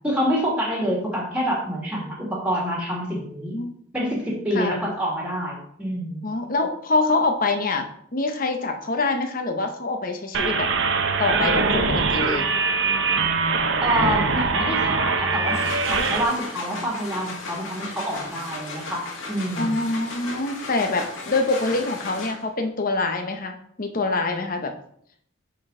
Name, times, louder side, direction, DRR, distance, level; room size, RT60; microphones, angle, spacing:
voice 1, 0.0-3.6 3.9-6.2 13.8-19.8, equal, 5° right, -3 dB, 2.0 m, -27 dB
voice 2, 6.2-7.9 8.1-10.7 11.2-12.5 19.6-24.7, left 3 dB, 45° left, 5 dB, 0.9 m, -25 dB
sound 1, 10.3-16.2, right 4 dB, 65° right, 0.7 m, -22 dB
sound 2, 15.3-22.6, left 3 dB, 85° left, 1.8 m, -35 dB
9.5 x 4.1 x 3.8 m, 0.67 s
head